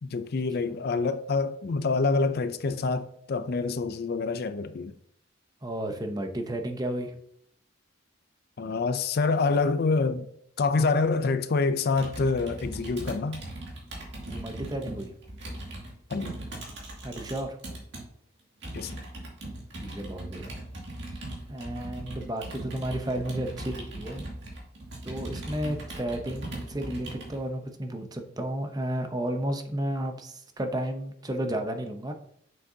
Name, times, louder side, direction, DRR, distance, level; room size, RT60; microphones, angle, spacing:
voice 1, 0.0-4.9 8.6-10.3 10.6-13.4 16.1-16.3 18.7-19.0, left 4 dB, 50° left, 0.4 m, -26 dB
voice 2, 5.6-7.2 14.2-15.1 17.0-17.6 19.8-20.6 21.1-21.2 21.5-24.3 25.0-32.1, right 1 dB, 20° right, 0.7 m, -33 dB
Computer keyboard, 11.9-18.0 18.6-27.4, right 1 dB, 60° right, 2.2 m, -39 dB
7.5 x 6.3 x 2.7 m
head